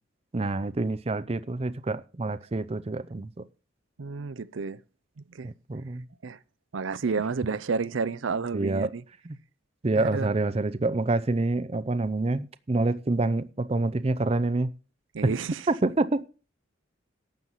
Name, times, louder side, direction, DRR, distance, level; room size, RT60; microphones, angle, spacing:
voice 1, 0.3-3.5 5.4-6.0 8.5-8.9 9.3-9.4 9.8-14.7 15.8-16.2, right 2 dB, 30° right, 0.5 m, -27 dB
voice 2, 4.0-4.8 5.2-5.5 6.2-6.4 6.7-9.0 9.9-10.3 15.1-15.7, right 4 dB, 75° right, 0.6 m, -30 dB
12.0 x 7.6 x 5.6 m
head